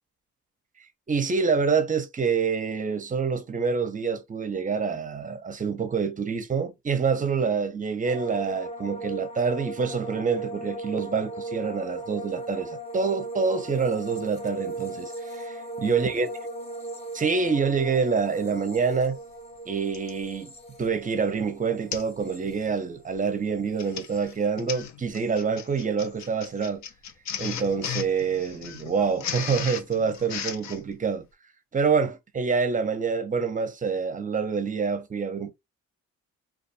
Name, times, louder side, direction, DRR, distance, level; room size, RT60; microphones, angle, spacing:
voice 1, 1.1-16.3 17.1-19.2 19.7-20.5 20.8-26.8 27.4-31.3 31.7-35.5, right 5 dB, 25° right, 0.6 m, -26 dB
sound 1, 8.1-23.3 23.5-24.2, right 1 dB, 20° left, 0.8 m, -38 dB
Printer, 18.7-18.8 19.9-20.2 20.8-21.0 21.3-21.4 21.9-22.2 22.5-22.8 23.6-30.8, left 8 dB, 65° left, 0.6 m, -36 dB
2.5 x 2.3 x 2.7 m
cardioid pair, 90°, 30 cm